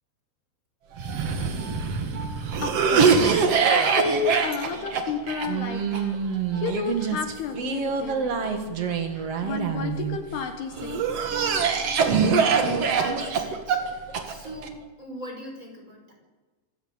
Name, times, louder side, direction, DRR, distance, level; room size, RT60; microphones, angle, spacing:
Cough, 1.0-10.2 10.8-14.7, right 5 dB, 50° right, 1.9 m, -24 dB
voice 1, 2.6-6.2 6.5-11.2 11.5-11.8, left 5 dB, 70° left, 5 dB, 3.2 m, -32 dB
voice 2, 12.6-13.8 14.2-16.1, right 1 dB, 20° right, 1 dB, 5.2 m, -40 dB
26.0 x 14.5 x 8.9 m, 1.3 s
omnidirectional pair, 5.2 m